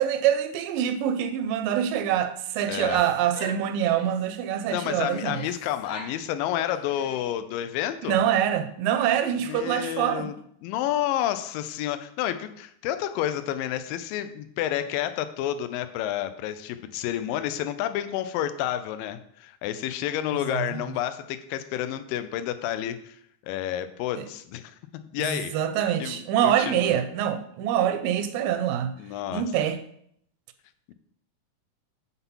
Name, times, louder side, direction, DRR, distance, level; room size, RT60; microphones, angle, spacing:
voice 1, 0.0-5.4 8.1-10.3 20.3-20.8 24.2-24.3 25.2-28.9 29.3-29.8, right 10 dB, 85° right, 2.2 m, -25 dB
voice 2, 2.7-3.0 4.7-8.2 9.4-10.3 10.6-23.2 23.4-24.8 25.1-25.6 26.0-26.9 29.0-29.4 30.9-31.0, left 11 dB, 85° left, 2.3 m, -30 dB
Female speech woman speaking / Yell, 2.7-4.3 4.9-6.2 6.5-7.5, left 1 dB, 50° left, 2.7 m, -42 dB
6.9 x 4.0 x 5.5 m
omnidirectional pair, 3.9 m